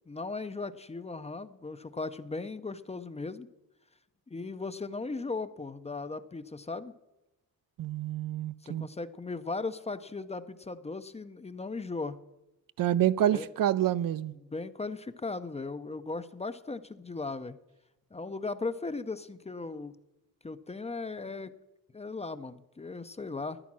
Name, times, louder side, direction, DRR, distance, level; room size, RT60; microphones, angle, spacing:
voice 1, 0.1-3.5 4.3-6.9 8.6-12.2 13.3-13.5 14.4-17.6 18.1-19.9 20.4-21.6 21.9-23.6, left 3 dB, 20° left, 0.5 m, -37 dB
voice 2, 7.8-8.9 12.8-14.3, right 11 dB, 65° right, 0.5 m, -27 dB
13.5 x 10.5 x 6.1 m
cardioid pair, 115°, 36 cm